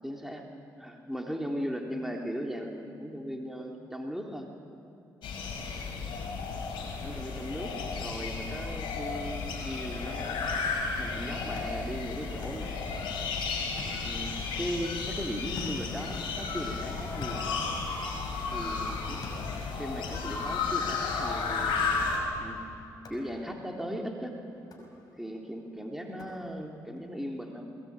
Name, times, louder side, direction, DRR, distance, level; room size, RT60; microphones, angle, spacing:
voice 1, 0.0-4.5 7.0-10.6 11.0-13.3 14.0-17.4 18.5-19.3 19.7-22.1 22.4-22.6 23.1-24.4 25.1-27.7, equal, 5° right, 1 dB, 3.3 m, -38 dB
sound 1, 5.2-22.2, left 4 dB, 75° left, 5.4 m, -33 dB
sound 2, 11.6-13.4 13.8-14.9 15.6-18.6 19.2-20.6 21.4-22.0 23.0-23.8 24.6-25.4 26.2-26.9, left 3 dB, 50° left, 6.0 m, -48 dB
21.5 x 21.0 x 8.9 m, 2.7 s
supercardioid pair, 55°, 9 cm